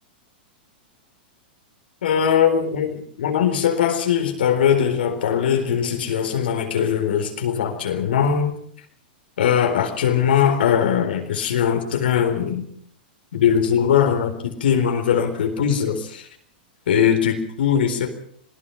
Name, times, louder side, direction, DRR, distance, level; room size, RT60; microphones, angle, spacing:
voice 1, 2.0-8.5 9.4-12.6 13.3-16.3 16.9-18.1, left 8 dB, 85° left, 5 dB, 4.1 m, -20 dB
26.0 x 18.0 x 5.8 m, 0.63 s
hypercardioid pair, 145°, 5 cm